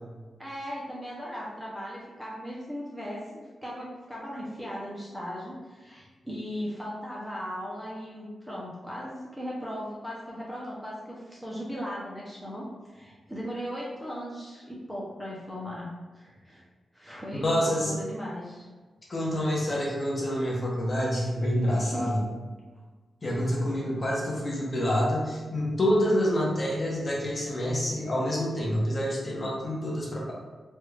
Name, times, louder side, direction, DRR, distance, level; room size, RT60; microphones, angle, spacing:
voice 1, 0.4-15.9 16.1-16.6 16.9-18.7 21.8-22.1, equal, 5° right, -6 dB, 0.5 m, -37 dB
voice 2, 17.3-17.9 19.1-22.2 23.2-30.3, equal, 30° left, -4 dB, 0.8 m, -27 dB
3.2 x 2.4 x 3.2 m, 1.4 s
wide cardioid pair, 160°, 0 cm